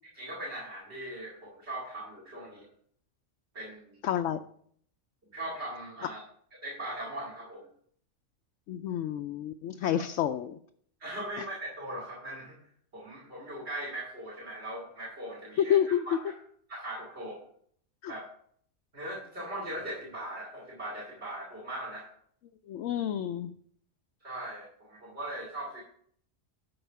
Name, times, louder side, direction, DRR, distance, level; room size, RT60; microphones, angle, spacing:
voice 1, 0.1-2.7 3.5-4.0 5.3-6.2 6.6-7.7 9.8-10.0 11.0-12.6 12.9-16.2 16.7-17.4 18.1-18.2 18.9-22.1 24.2-25.8, right 1 dB, 60° right, -4 dB, 2.6 m, -39 dB
voice 2, 4.0-4.4 8.7-10.6 11.4-11.5 15.6-16.0 18.0-18.1 22.7-23.5, left 10 dB, 80° left, 7 dB, 0.9 m, -29 dB
12.0 x 4.7 x 5.6 m, 0.62 s
omnidirectional pair, 1.3 m